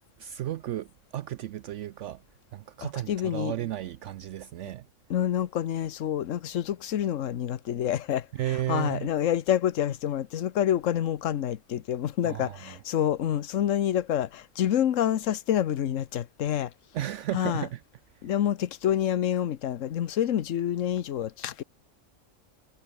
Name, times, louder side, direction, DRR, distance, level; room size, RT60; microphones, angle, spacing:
voice 1, 0.0-2.2 2.5-4.9 8.3-9.1 12.2-12.8 16.9-17.8, right 13 dB, 70° right, 0.8 m, -34 dB
voice 2, 2.8-3.5 5.1-8.3 8.7-16.7 17.3-17.7 18.2-21.6, left 10 dB, 70° left, 1.2 m, -27 dB
omnidirectional pair, 1.4 m